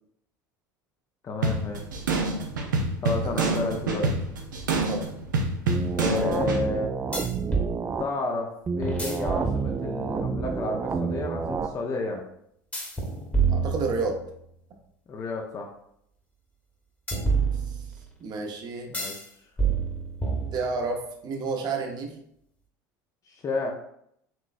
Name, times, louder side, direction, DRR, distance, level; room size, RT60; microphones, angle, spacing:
voice 1, 1.2-1.8 3.0-4.1 5.9-6.9 8.0-12.2 15.1-15.7 18.9-19.2 23.3-23.7, left 3 dB, 35° left, 1 dB, 0.6 m, -31 dB
sound 1, 1.4-6.6, right 3 dB, 85° right, 0.6 m, -27 dB
sound 2, 5.7-8.1 8.7-11.7, right 5 dB, 25° right, 0.4 m, -29 dB
sound 3, 7.1-7.7 8.8-10.1 12.7-14.4 17.1-18.1 18.9-19.3 19.6-20.9, right 5 dB, 15° left, 1.1 m, -28 dB
voice 2, 13.5-14.2 17.7-17.8 18.2-18.9 20.5-22.2, right 4 dB, 45° right, 3 dB, 0.8 m, -30 dB
4.5 x 3.0 x 2.5 m, 0.72 s
hypercardioid pair, 75°, 10 cm